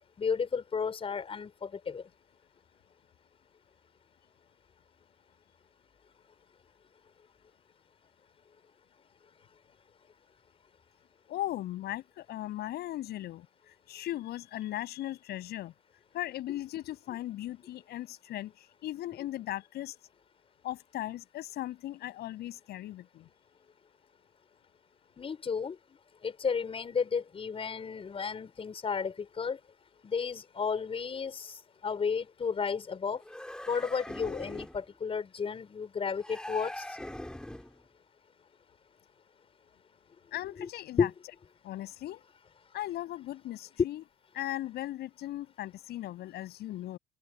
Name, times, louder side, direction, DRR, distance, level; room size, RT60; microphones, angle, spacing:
voice 1, 0.2-2.0 25.2-25.8 26.2-29.6 30.0-31.5 31.8-33.2 33.7-36.8 40.6-40.7 41.0-41.1, left 6 dB, 35° left, 6.1 m, -32 dB
voice 2, 11.3-13.5 13.9-15.7 16.1-20.0 20.6-23.3 40.3-41.1 41.6-42.2 42.7-44.0 44.3-47.0, left 14 dB, 75° left, 7.2 m, -38 dB
sound 1, 33.2-34.8 36.2-37.8, left 1 dB, 5° left, 5.2 m, -42 dB
open air
cardioid pair, 110°, 17 cm